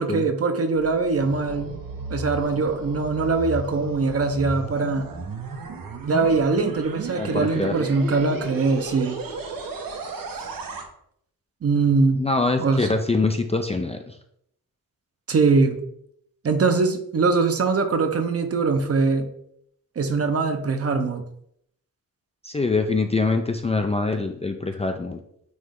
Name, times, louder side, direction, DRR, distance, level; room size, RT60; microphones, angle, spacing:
voice 1, 0.0-1.8 2.1-5.1 6.1-9.2 11.6-12.2 12.6-12.9 15.3-15.8 16.4-19.3 20.0-21.2, right 4 dB, 45° right, 7 dB, 0.8 m, -22 dB
sound 1, 0.7-10.8, right 4 dB, 75° right, 1.2 m, -34 dB
voice 2, 7.1-7.9 12.1-14.2 22.4-25.2, left 3 dB, 20° left, 5 dB, 0.4 m, -24 dB
9.4 x 3.2 x 3.6 m, 0.71 s
wide cardioid pair, 145°, 34 cm